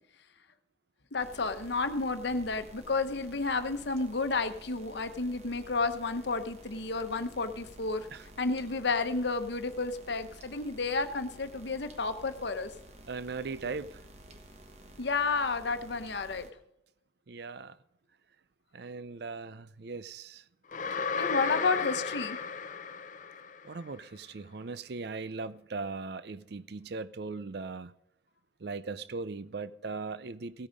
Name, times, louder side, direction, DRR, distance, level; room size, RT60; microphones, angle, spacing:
voice 1, 1.1-8.1 8.4-12.7 15.0-16.5 21.1-22.4, left 3 dB, 60° left, 1.0 m, -31 dB
sound 1, 1.2-16.5, right 1 dB, 35° right, 1.3 m, -52 dB
voice 2, 13.1-14.0 17.3-17.8 18.7-20.4 23.6-27.9 28.6-30.7, right 4 dB, 55° right, 0.5 m, -39 dB
sound 2, 20.7-23.8, left 5 dB, 40° left, 0.5 m, -34 dB
16.5 x 8.7 x 5.2 m
head